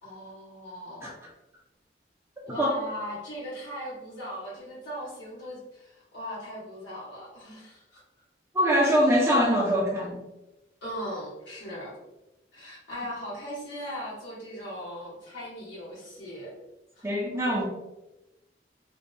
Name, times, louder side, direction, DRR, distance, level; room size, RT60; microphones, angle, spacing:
voice 1, 0.0-1.1 2.5-8.0 10.8-11.9 12.5-16.5 16.9-17.0, equal, 85° left, -7 dB, 1.3 m, -38 dB
voice 2, 8.5-10.2 17.0-17.7, equal, 15° right, -4 dB, 0.3 m, -23 dB
2.6 x 2.0 x 2.5 m, 0.96 s
head